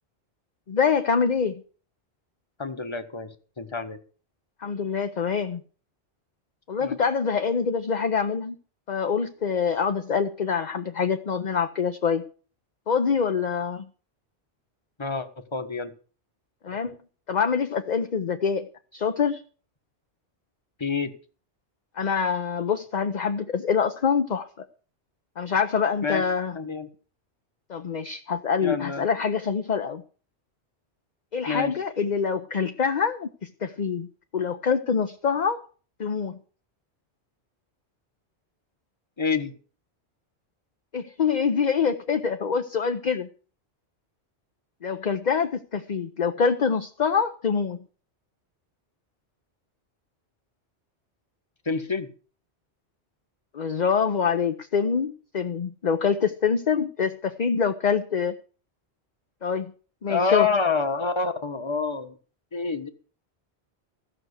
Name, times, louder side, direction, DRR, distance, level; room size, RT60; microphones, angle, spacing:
voice 1, 0.7-1.6 4.6-5.6 6.7-8.6 8.9-12.2 12.9-13.9 16.6-17.0 17.3-18.7 18.9-19.4 22.0-24.7 25.4-26.6 27.7-30.0 31.3-34.1 34.3-35.6 36.0-36.4 40.9-43.3 44.8-47.8 53.5-58.4 59.4-59.7 60.0-60.5, left 6 dB, 45° left, 7 dB, 0.8 m, -25 dB
voice 2, 2.6-4.0 6.8-7.0 15.0-15.9 20.8-21.1 26.0-26.2 26.5-26.9 28.6-29.1 31.5-31.7 39.2-39.5 51.6-52.1 60.1-62.1 62.5-62.9, left 5 dB, 25° left, 8 dB, 1.2 m, -27 dB
15.0 x 6.2 x 8.1 m, 0.40 s
omnidirectional pair, 1.1 m